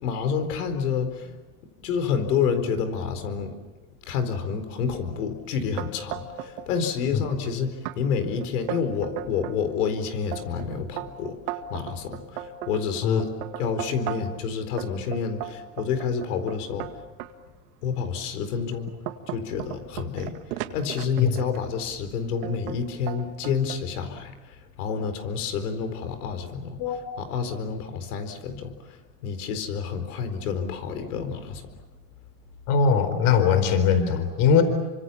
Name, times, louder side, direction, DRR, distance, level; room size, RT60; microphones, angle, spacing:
voice 1, 0.0-1.4 1.8-3.6 4.0-16.9 17.8-19.0 19.3-31.7, left 6 dB, 90° left, 9 dB, 4.4 m, -29 dB
sound 1, 5.8-6.7 7.0-7.5 7.9-8.0 8.4-9.6 10.1-14.4 14.8-17.3 17.9-18.1 18.6-21.6 22.4-22.8 23.1-23.8, right 11 dB, 80° right, 2.1 m, -35 dB
voice 2, 32.7-34.6, left 6 dB, 65° left, 9 dB, 4.3 m, -20 dB
29.0 x 25.5 x 7.1 m, 1.2 s
supercardioid pair, 125°, 44 cm